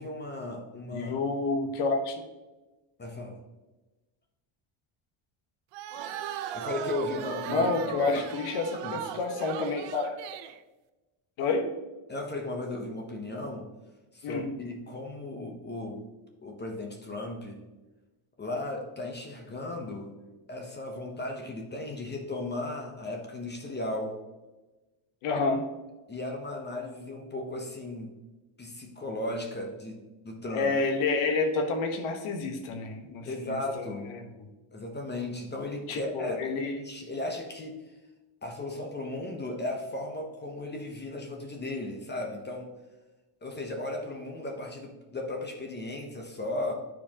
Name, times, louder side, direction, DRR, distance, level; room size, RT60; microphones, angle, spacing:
voice 1, 0.0-1.2 3.0-3.4 6.5-7.7 8.8-9.0 12.1-13.7 14.1-16.0 16.4-17.6 18.4-20.1 20.5-24.2 26.1-28.1 28.6-30.7 33.2-34.1 34.7-37.8 38.4-42.7 43.4-46.7, left 2 dB, 20° left, 2 dB, 0.8 m, -36 dB
voice 2, 0.9-2.2 7.5-10.2 11.4-11.7 14.2-14.5 25.2-25.7 30.5-34.5 35.9-36.7, left 3 dB, 75° left, 4 dB, 1.2 m, -29 dB
sound 1, 5.7-10.6, right 10 dB, 60° right, 0.5 m, -37 dB
9.8 x 4.6 x 2.8 m, 1.1 s
cardioid pair, 135°, 49 cm